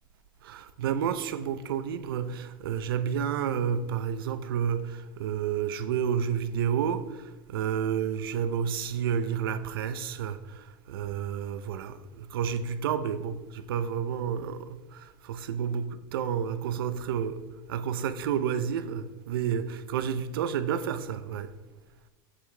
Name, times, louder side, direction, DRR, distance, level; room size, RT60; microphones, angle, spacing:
voice 1, 0.4-17.4 17.7-21.5, right 8 dB, 90° right, 0.6 m, -30 dB
8.3 x 7.4 x 3.3 m
supercardioid pair, 180°, 12 cm